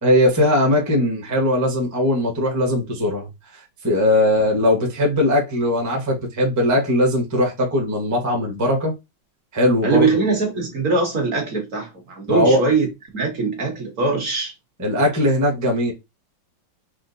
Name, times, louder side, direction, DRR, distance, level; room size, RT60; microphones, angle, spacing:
voice 1, 0.0-3.3 3.5-8.9 9.5-10.1 12.3-12.6 14.8-15.9, left 1 dB, 20° right, 0.5 m, -19 dB
voice 2, 9.8-12.9 13.1-14.5, right 4 dB, 50° right, 1.1 m, -21 dB
4.4 x 2.1 x 2.6 m
omnidirectional pair, 2.1 m